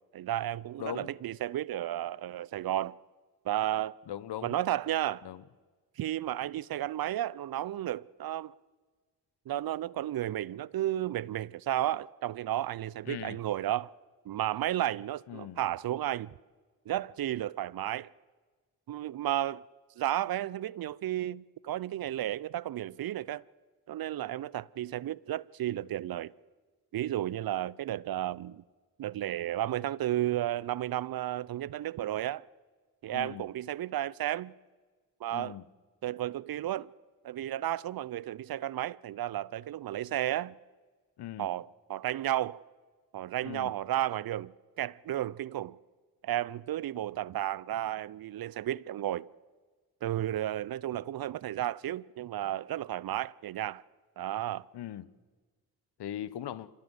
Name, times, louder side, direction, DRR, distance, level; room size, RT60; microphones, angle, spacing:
voice 1, 0.1-3.0 3.4-3.9 4.4-5.2 6.0-8.5 9.5-13.9 14.3-16.3 16.9-18.1 18.9-19.6 20.0-23.4 23.9-26.3 26.9-28.6 29.0-32.4 33.0-34.5 35.2-35.6 36.0-36.9 37.2-40.5 41.4-42.6 43.1-44.5 44.8-45.8 46.2-49.3 50.0-53.8 54.2-54.7, right 13 dB, 55° right, 0.7 m, -33 dB
voice 2, 0.8-1.1 4.1-4.6 5.2-5.4 13.1-13.4 15.3-15.6 33.1-33.5 35.3-35.6 41.2-41.5 43.4-43.7 54.7-55.1 56.0-56.7, left 11 dB, 60° left, 1.1 m, -40 dB
26.0 x 16.0 x 8.0 m
hypercardioid pair, 45°, 44 cm